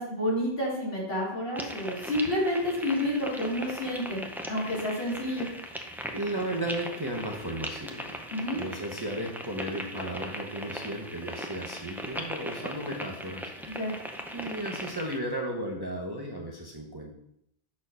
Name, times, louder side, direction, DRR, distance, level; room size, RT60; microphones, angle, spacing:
voice 1, 0.0-5.5 8.3-8.6 13.7-13.9, left 1 dB, 60° left, -4 dB, 3.1 m, -29 dB
sound 1, 1.6-15.2, equal, ahead, 0.6 m, -39 dB
voice 2, 6.1-8.2 8.5-13.5 14.3-17.1, right 1 dB, 25° right, -1 dB, 0.9 m, -35 dB
6.4 x 4.2 x 5.5 m, 0.73 s
omnidirectional pair, 1.1 m